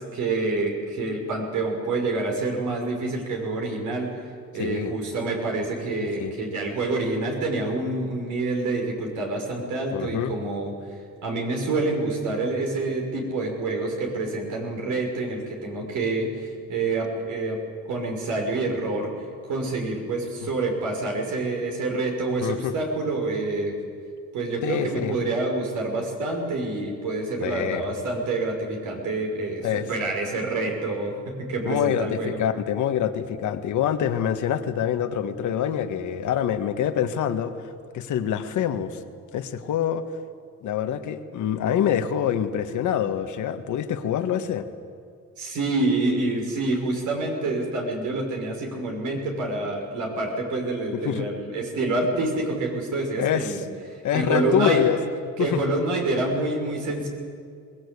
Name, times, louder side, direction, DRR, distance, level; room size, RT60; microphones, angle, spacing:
voice 1, 0.0-4.1 4.5-10.7 11.2-17.6 17.9-19.1 19.4-23.8 24.3-32.4 45.4-53.6 53.9-54.8 55.4-57.1, right 2 dB, 80° right, 1 dB, 5.8 m, -27 dB
voice 2, 4.6-5.0 6.2-6.3 9.9-10.4 20.4-20.5 22.4-22.7 24.6-25.2 27.4-27.8 29.6-29.9 31.6-39.0 39.3-40.0 40.6-44.7 50.9-51.3 53.2-53.6 54.0-55.0 55.4-55.6, left 9 dB, 80° left, 8 dB, 1.6 m, -26 dB
22.5 x 19.5 x 8.4 m, 2.2 s
cardioid pair, 90°, 30 cm